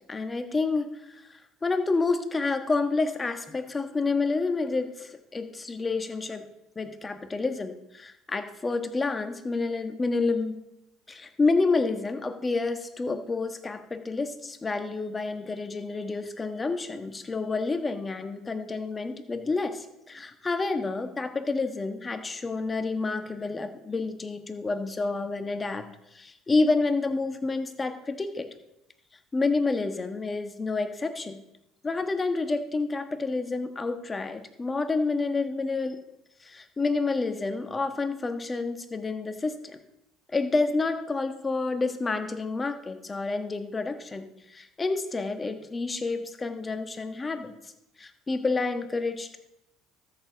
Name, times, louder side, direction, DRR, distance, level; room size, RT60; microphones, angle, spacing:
voice 1, 0.1-0.9 1.6-6.5 6.7-10.6 11.1-25.9 26.1-28.5 29.3-31.4 31.8-36.0 36.4-39.8 40.3-47.6 48.0-49.4, left 3 dB, 25° left, 8 dB, 1.3 m, -29 dB
13.0 x 7.2 x 3.9 m, 0.83 s
hypercardioid pair, 60°, 0 cm